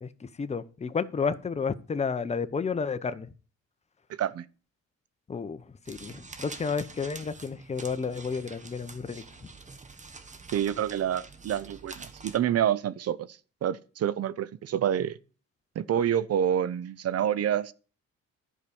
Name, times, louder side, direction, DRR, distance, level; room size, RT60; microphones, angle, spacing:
voice 1, 0.0-3.3 5.3-9.5, left 5 dB, 20° left, 0.7 m, -32 dB
sound 1, 5.9-12.4, right 4 dB, 25° right, 1.1 m, -46 dB
voice 2, 10.5-13.3 13.6-15.2 15.8-17.7, right 10 dB, 55° right, 0.6 m, -27 dB
11.0 x 4.9 x 6.9 m
cardioid pair, 90°, 30 cm